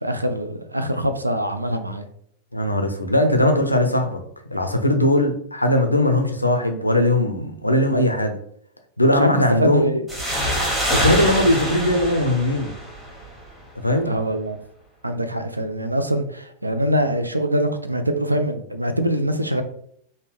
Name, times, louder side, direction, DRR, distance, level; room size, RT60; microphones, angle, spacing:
voice 1, 0.0-2.1 9.2-10.0 14.0-14.6 15.0-19.6, equal, 85° right, 8 dB, 0.3 m, -23 dB
voice 2, 2.5-4.2 4.5-8.4 9.0-9.8 10.9-12.7 13.8-14.1, left 1 dB, 85° left, 5 dB, 0.5 m, -19 dB
sound 1, 10.1-13.5, equal, 10° right, 1.2 m, -25 dB
3.7 x 2.1 x 3.2 m, 0.67 s
figure-of-eight pair, 90°, 0 cm